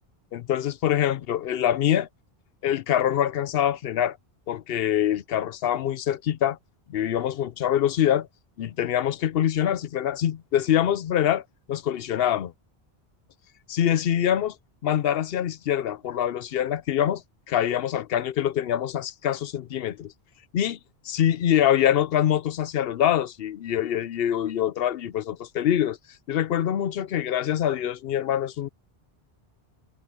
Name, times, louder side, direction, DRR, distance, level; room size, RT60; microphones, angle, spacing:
voice 1, 0.3-2.1 2.6-4.2 4.5-6.6 6.9-8.3 8.6-12.5 13.7-14.6 14.8-20.1 20.5-20.8 21.0-26.0 26.3-28.7, left 10 dB, 70° left, 0.8 m, -24 dB
omnidirectional pair, 1.1 m